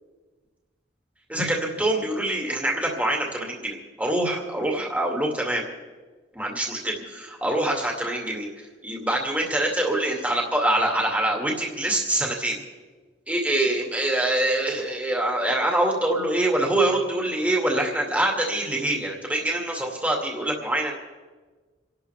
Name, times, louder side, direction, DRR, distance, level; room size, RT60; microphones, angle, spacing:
voice 1, 1.3-5.6 6.3-8.5 8.8-12.6 13.3-21.0, right 1 dB, 10° right, -1 dB, 2.3 m, -25 dB
29.0 x 12.0 x 3.4 m, 1.4 s
head